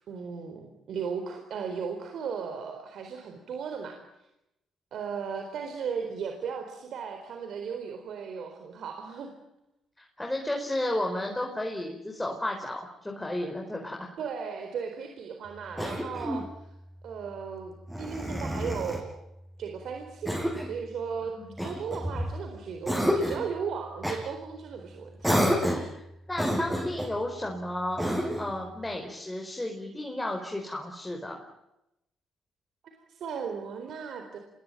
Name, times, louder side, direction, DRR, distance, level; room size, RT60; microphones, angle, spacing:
voice 1, 0.0-4.0 4.9-9.3 14.2-16.5 17.0-19.1 19.6-21.3 21.6-25.4 32.8-34.4, right 6 dB, 70° right, 5 dB, 4.2 m, -36 dB
voice 2, 10.0-14.0 21.4-21.5 26.3-31.4, left 1 dB, 10° left, 1 dB, 4.8 m, -33 dB
Cough, 15.8-16.5 17.9-19.0 20.2-20.8 21.6-22.4 22.8-23.5 24.0-24.2 25.2-25.9 26.3-27.1 28.0-28.5, equal, 5° right, 7.4 m, -29 dB
27.5 x 22.0 x 9.1 m, 0.87 s
cardioid pair, 90°, 0 cm